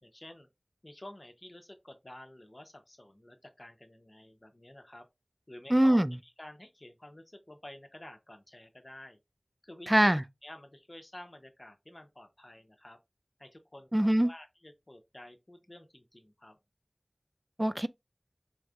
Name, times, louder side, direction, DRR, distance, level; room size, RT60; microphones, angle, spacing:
voice 1, 0.0-0.5 0.8-5.1 5.5-6.0 6.4-9.2 9.6-9.9 10.4-13.0 13.4-16.6, left 1 dB, 40° left, 0.9 m, -50 dB
voice 2, 5.7-6.1 9.9-10.2 13.9-14.3 17.6-17.9, right 1 dB, 20° right, 0.3 m, -23 dB
4.4 x 3.2 x 2.5 m
wide cardioid pair, 45°, 0 cm